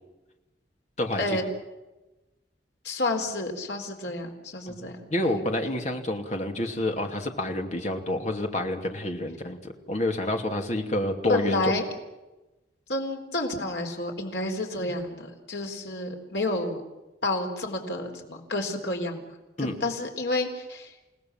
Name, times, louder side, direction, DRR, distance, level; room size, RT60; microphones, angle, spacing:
voice 1, 2.8-5.0 5.2-5.3 11.3-11.8 12.9-16.8 17.2-20.9, left 2 dB, 85° left, 3 dB, 4.1 m, -30 dB
voice 2, 4.7-11.7 19.6-19.7, left 1 dB, 40° left, 4 dB, 2.6 m, -28 dB
29.0 x 18.0 x 7.3 m, 1.1 s
head